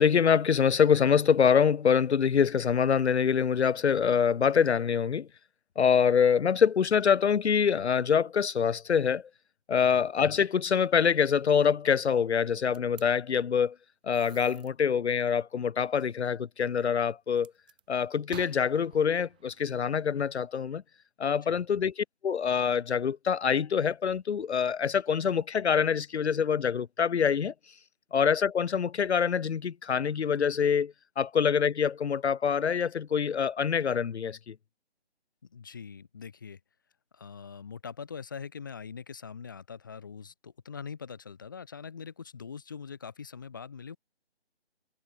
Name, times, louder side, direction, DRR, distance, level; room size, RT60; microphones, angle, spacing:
voice 1, 0.0-5.3 5.8-9.3 9.7-13.8 14.0-17.5 17.9-20.8 21.2-27.5 28.1-34.5, left 7 dB, 80° left, 0.6 m, -25 dB
sound 1, 12.7-13.1 14.1-14.7 17.4-17.8 18.3-20.5, right 12 dB, 10° right, 1.9 m, -51 dB
voice 2, 35.5-36.6 37.1-44.0, left 6 dB, 20° left, 2.3 m, -43 dB
hypercardioid pair, 180°, 33 cm